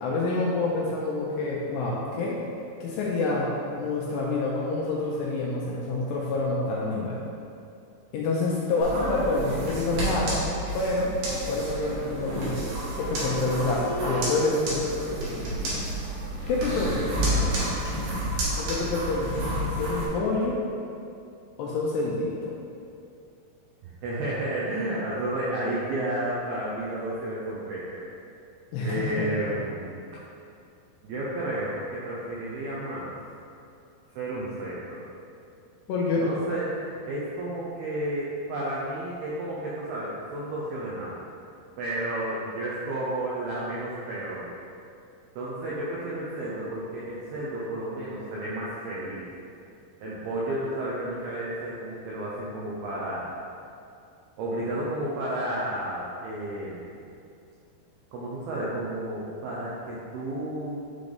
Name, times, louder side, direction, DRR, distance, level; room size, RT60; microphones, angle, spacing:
voice 1, 0.0-2.4 2.8-7.3 8.1-10.4 10.7-11.1 11.5-12.7 13.0-15.5 16.5-17.1 18.6-20.6 21.6-22.5 28.7-29.6 35.9-36.3, left 3 dB, 85° left, -4 dB, 2.5 m, -27 dB
sound 1, 8.8-20.1, right 1 dB, 60° right, 2.6 m, -30 dB
voice 2, 16.8-17.6 23.8-28.0 28.8-29.9 31.0-33.1 34.2-35.0 36.2-41.2 41.8-44.5 45.4-49.2 50.0-53.4 54.4-56.9 58.1-60.8, right 1 dB, 80° right, -6 dB, 2.2 m, -32 dB
9.6 x 3.9 x 3.4 m, 2.5 s
omnidirectional pair, 5.3 m